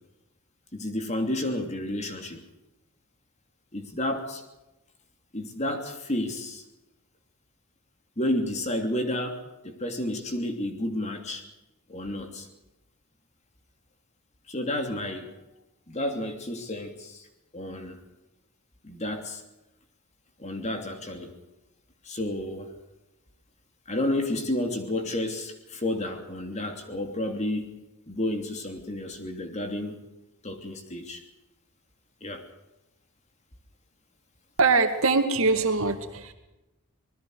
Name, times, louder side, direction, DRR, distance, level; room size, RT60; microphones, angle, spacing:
voice 1, 0.7-2.4 3.7-4.4 5.3-6.6 8.2-11.4 11.9-12.5 14.5-15.3 15.9-17.3 17.5-18.0 18.8-19.4 20.4-21.3 22.0-22.7 23.9-27.8 28.1-30.0 30.4-31.2 32.2-32.4, left 1 dB, 30° left, 5 dB, 3.0 m, -31 dB
voice 2, 34.6-36.3, right 4 dB, 65° right, 6 dB, 2.4 m, -23 dB
26.0 x 20.5 x 4.9 m, 0.97 s
head